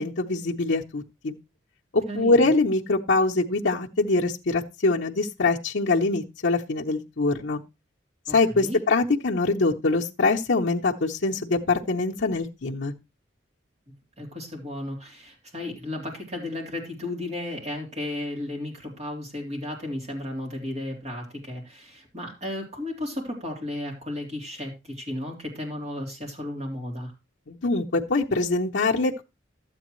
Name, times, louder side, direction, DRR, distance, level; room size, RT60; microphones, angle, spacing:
voice 1, 0.0-1.3 1.9-7.6 8.3-12.9 27.5-29.2, left 3 dB, 75° left, 0.8 m, -24 dB
voice 2, 2.1-2.5 8.3-8.8 14.2-27.1, left 1 dB, 35° right, 3.5 m, -34 dB
12.5 x 8.5 x 3.1 m
head